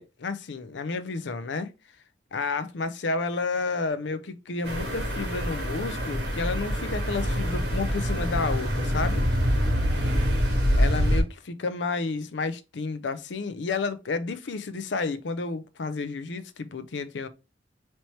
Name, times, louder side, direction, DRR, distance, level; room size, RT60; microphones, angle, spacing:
voice 1, 0.0-1.7 2.3-9.2 10.7-17.3, left 4 dB, 85° left, 0.5 m, -31 dB
sound 1, 4.6-11.2, equal, 65° right, 1.7 m, -25 dB
4.3 x 3.0 x 3.1 m
head